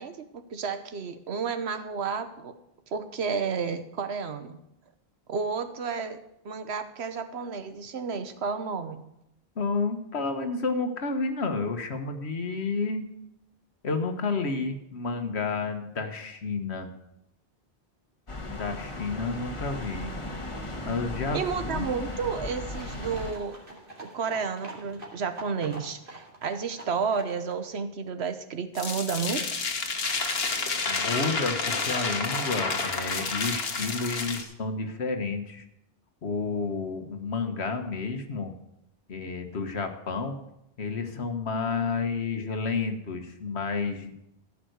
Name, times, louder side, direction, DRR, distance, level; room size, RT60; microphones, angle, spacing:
voice 1, 0.0-2.5 2.9-4.6 5.3-9.0 21.3-23.6 24.0-29.4, right 5 dB, 85° right, 10 dB, 1.2 m, -31 dB
voice 2, 9.6-13.0 13.8-16.9 18.5-20.1 20.8-21.9 30.9-35.6 36.2-38.5 39.1-40.4 40.8-44.1, left 4 dB, 90° left, 6 dB, 1.6 m, -30 dB
sound 1, 18.3-23.3, left 2 dB, 30° left, 1.4 m, -36 dB
sound 2, 22.7-27.7, right 2 dB, 55° right, 2.5 m, -45 dB
sound 3, 28.8-34.4, left 4 dB, 70° left, 1.5 m, -29 dB
14.5 x 5.9 x 8.0 m, 0.84 s
omnidirectional pair, 1.1 m